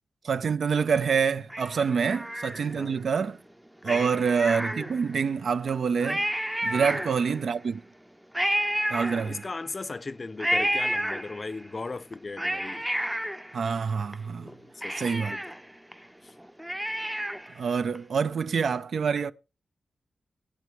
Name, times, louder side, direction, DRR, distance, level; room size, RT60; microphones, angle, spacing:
voice 1, 0.2-3.4 3.8-6.3 6.6-7.8 8.9-9.4 13.5-14.5 15.0-15.4 17.6-19.3, right 6 dB, 70° right, 0.5 m, -26 dB
Cat, 1.5-3.0 3.8-5.2 5.7-5.8 6.0-7.5 8.3-9.7 10.4-11.7 12.1-14.1 14.5-14.6 14.8-17.6 17.9-18.0, equal, 5° right, 0.5 m, -31 dB
voice 2, 3.8-4.2 6.7-7.2 9.2-12.9 14.4-15.4 16.2-16.3, left 3 dB, 35° left, 0.5 m, -38 dB
17.0 x 8.4 x 3.2 m
wide cardioid pair, 90°, 0 cm